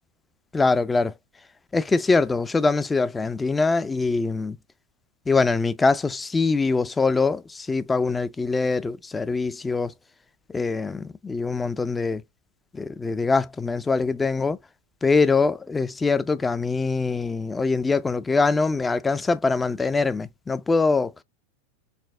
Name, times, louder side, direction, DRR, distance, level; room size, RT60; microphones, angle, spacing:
voice 1, 0.5-1.1 1.7-4.6 5.3-9.9 10.5-12.2 12.7-14.6 15.0-21.2, left 4 dB, 15° left, 0.3 m, -23 dB
4.2 x 2.0 x 3.5 m
hypercardioid pair, 105°, 0 cm